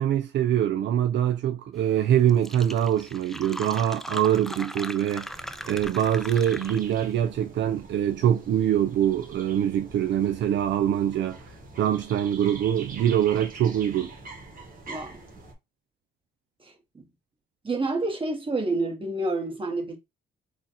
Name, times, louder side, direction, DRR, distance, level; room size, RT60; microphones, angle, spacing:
voice 1, 0.0-14.1, right 10 dB, 65° right, 0.5 m, -24 dB
Fill (with liquid), 2.0-2.1 2.3-7.1, equal, ahead, 0.4 m, -39 dB
sound 1, 5.3-15.5, right 3 dB, 45° right, 1.7 m, -45 dB
voice 2, 14.9-15.2 16.6-17.0 17.6-20.0, right 2 dB, 25° right, 1.6 m, -29 dB
3.8 x 2.5 x 4.2 m
cardioid pair, 90°, 20 cm